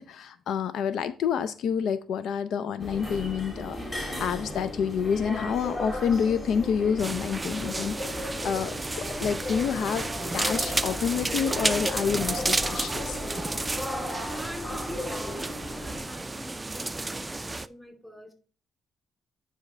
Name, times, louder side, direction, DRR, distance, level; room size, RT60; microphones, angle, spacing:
voice 1, 0.0-13.2, left 7 dB, 75° left, 13 dB, 0.4 m, -28 dB
sound 1, 2.8-16.0, left 1 dB, 30° left, 2.5 m, -36 dB
sound 2, 7.0-17.7, right 2 dB, 20° right, 0.4 m, -32 dB
voice 2, 14.2-18.3, equal, 5° left, 2 dB, 2.9 m, -44 dB
9.7 x 5.0 x 3.2 m, 0.38 s
cardioid pair, 90°, 0 cm